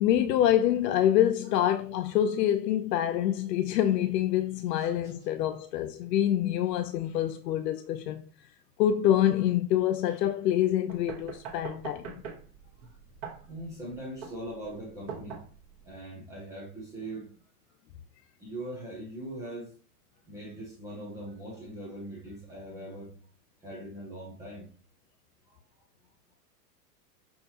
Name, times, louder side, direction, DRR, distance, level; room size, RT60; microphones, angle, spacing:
voice 1, 0.0-8.3 8.8-12.1, left 11 dB, 90° left, 0.6 m, -26 dB
sound 1, 10.9-15.9, right 6 dB, 35° right, 1.1 m, -43 dB
voice 2, 13.2-15.4 15.8-17.3 18.4-19.7 20.3-23.3 23.6-24.7 25.4-25.6, right 1 dB, 10° right, 0.3 m, -41 dB
5.6 x 2.8 x 2.7 m
supercardioid pair, 140°, 48 cm